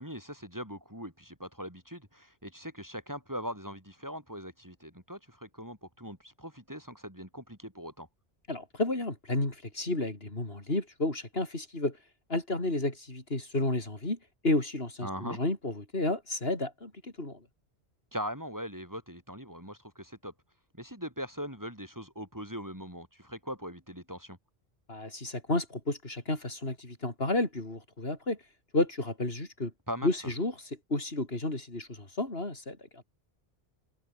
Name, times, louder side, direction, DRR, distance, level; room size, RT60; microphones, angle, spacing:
voice 1, 0.0-8.1 15.0-15.4 18.1-20.3 20.8-24.4 29.9-30.1, equal, 15° right, 6.0 m, -41 dB
voice 2, 8.5-12.0 12.3-14.2 14.4-17.4 24.9-28.4 28.7-29.7 30.0-33.0, left 2 dB, 70° left, 4.6 m, -31 dB
omnidirectional pair, 1.1 m